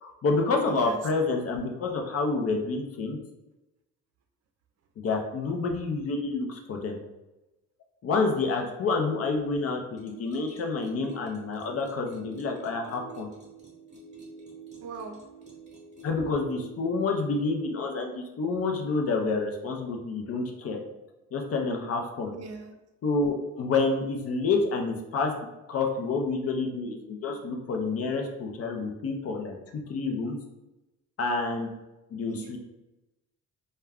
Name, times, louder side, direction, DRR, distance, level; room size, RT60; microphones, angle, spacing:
voice 1, 0.0-3.2 5.0-7.0 8.0-13.3 16.0-20.8 21.3-22.3 23.0-25.3 25.7-29.5 29.9-30.3 31.2-31.7 32.1-32.6, left 3 dB, 50° left, 3 dB, 0.5 m, -28 dB
sound 1, 10.0-17.2, right 5 dB, 25° right, 0.9 m, -47 dB
voice 2, 14.8-15.2 22.3-22.7 32.3-32.6, right 5 dB, 55° right, 5 dB, 0.5 m, -39 dB
2.3 x 2.2 x 3.5 m, 1.0 s
cardioid pair, 90°, 30 cm